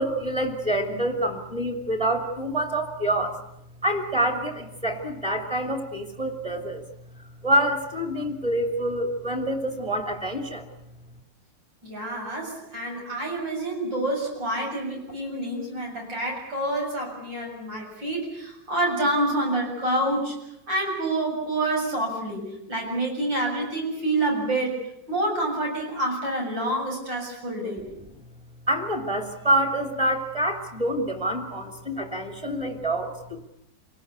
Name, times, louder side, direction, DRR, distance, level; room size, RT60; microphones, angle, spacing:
voice 1, 0.0-3.3 3.8-6.8 7.4-10.6 28.7-33.1, right 1 dB, 15° right, 4 dB, 2.8 m, -26 dB
voice 2, 11.8-20.3 20.7-24.8 25.1-27.8, right 1 dB, 90° right, 0 dB, 8.2 m, -27 dB
27.5 x 19.0 x 8.3 m, 0.82 s
omnidirectional pair, 1.9 m